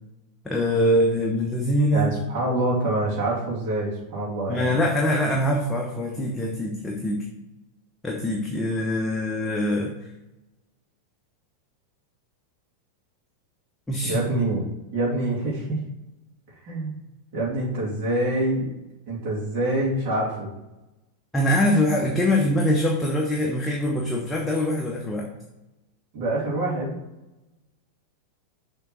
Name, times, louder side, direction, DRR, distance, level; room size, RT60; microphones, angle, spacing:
voice 1, 0.4-2.1 4.5-7.2 8.0-9.9 13.9-14.2 21.3-25.3, left 1 dB, 10° left, -1 dB, 0.9 m, -23 dB
voice 2, 1.9-4.7 14.0-14.6 14.9-15.8 16.6-16.9 17.3-18.7 19.1-20.5 26.1-27.0, right 1 dB, 40° right, -7 dB, 2.7 m, -26 dB
6.7 x 3.7 x 6.0 m, 0.98 s
figure-of-eight pair, 90°, 0 cm